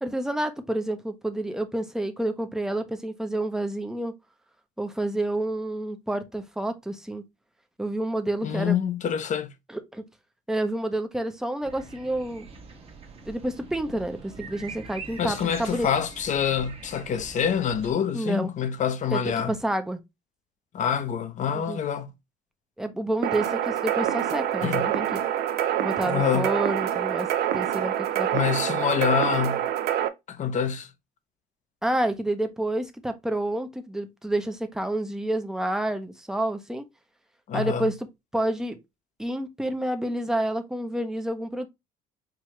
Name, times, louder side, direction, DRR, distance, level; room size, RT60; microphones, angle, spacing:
voice 1, 0.0-4.2 4.8-7.2 7.8-8.8 9.7-10.1 10.5-12.5 13.3-15.9 18.1-18.5 19.1-19.2 19.5-20.0 21.5-21.8 22.8-25.2 25.8-27.3 27.5-28.4 31.8-36.9 37.5-38.0 38.3-38.8 39.2-41.7, right 1 dB, 5° right, 0.6 m, -29 dB
voice 2, 8.4-9.5 15.2-19.6 20.7-22.1 24.6-24.9 26.0-26.5 28.3-29.7 30.3-30.9 37.5-37.9, left 8 dB, 45° left, 0.6 m, -26 dB
sound 1, 11.6-17.9, right 4 dB, 35° right, 1.1 m, -44 dB
sound 2, 23.2-30.1, right 10 dB, 70° right, 0.5 m, -26 dB
4.6 x 2.3 x 2.9 m
cardioid pair, 110°, 17 cm